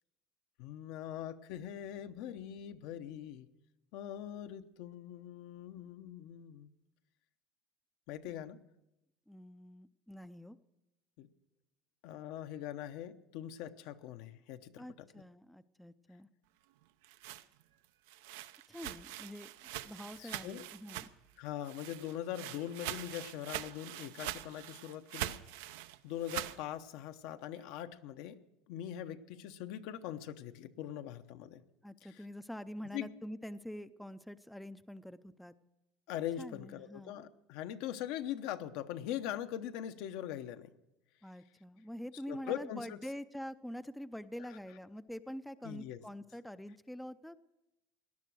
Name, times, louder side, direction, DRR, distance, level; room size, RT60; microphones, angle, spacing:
voice 1, 0.6-3.5 3.9-6.7 8.1-8.6 11.2-11.3 12.0-15.1 20.2-20.7 21.4-25.4 26.0-28.4 28.7-31.6 32.0-32.1 32.9-33.1 36.1-40.7 42.3-43.0 45.6-46.0, left 11 dB, 70° left, 9 dB, 0.9 m, -42 dB
voice 2, 9.3-10.6 14.8-16.3 18.7-19.5 19.8-21.1 31.8-35.5 36.4-37.2 41.2-47.4, equal, ahead, 12 dB, 0.4 m, -46 dB
sound 1, 16.8-21.3 21.6-26.6, right 14 dB, 90° right, 0.7 m, -43 dB
18.0 x 11.0 x 6.2 m, 0.90 s
cardioid pair, 135°, 0 cm